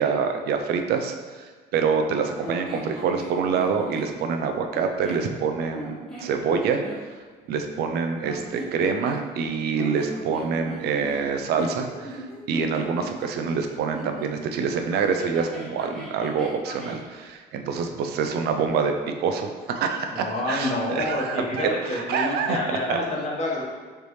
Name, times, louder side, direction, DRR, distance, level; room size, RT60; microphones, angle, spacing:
voice 1, 0.0-6.8 7.5-12.2 12.5-18.9 19.2-23.0, right 5 dB, 70° right, 5 dB, 0.5 m, -26 dB
sound 1, 2.4-4.1 4.7-5.3 5.7-7.0 8.2-9.4 9.7-14.3 14.9-17.0, equal, 5° left, 1.1 m, -38 dB
voice 2, 20.1-23.6, left 1 dB, 40° left, -4 dB, 1.2 m, -28 dB
4.0 x 3.3 x 3.2 m, 1.5 s
cardioid pair, 110°, 17 cm